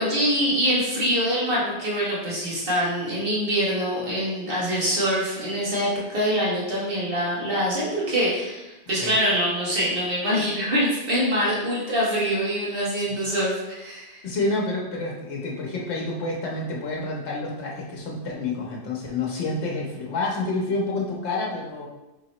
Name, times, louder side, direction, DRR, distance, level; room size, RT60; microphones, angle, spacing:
voice 1, 0.0-14.2, equal, 55° right, -6 dB, 1.5 m, -24 dB
voice 2, 14.2-21.9, left 2 dB, 85° left, -2 dB, 1.1 m, -28 dB
3.4 x 2.8 x 4.2 m, 1.0 s
omnidirectional pair, 1.1 m